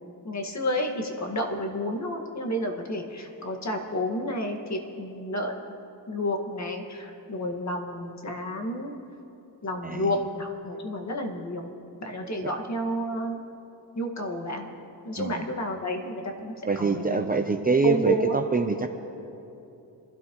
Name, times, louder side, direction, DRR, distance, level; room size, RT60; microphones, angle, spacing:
voice 1, 0.2-5.5 6.1-8.9 9.6-11.7 12.0-13.4 13.9-14.7 15.0-17.2 17.8-18.4, equal, 40° left, 3 dB, 1.9 m, -30 dB
voice 2, 9.8-10.2 12.4-12.5 15.2-15.5 16.7-18.9, right 3 dB, 20° right, 5 dB, 0.6 m, -25 dB
25.5 x 13.0 x 3.1 m, 2.9 s
cardioid pair, 100°, 43 cm